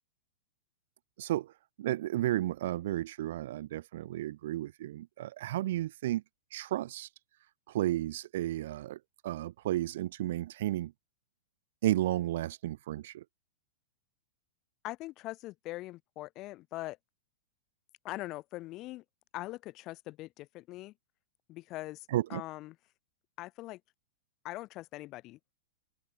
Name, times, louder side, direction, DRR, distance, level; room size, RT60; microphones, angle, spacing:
voice 1, 1.2-1.5 1.8-6.2 6.5-7.1 7.7-10.9 11.8-13.2 22.1-22.4, right 14 dB, 60° right, 1.7 m, -33 dB
voice 2, 14.8-17.0 18.0-19.0 19.3-20.9 21.5-22.8 23.4-23.8 24.4-25.4, left 18 dB, 30° left, 3.5 m, -42 dB
open air
supercardioid pair, 160°, 0 cm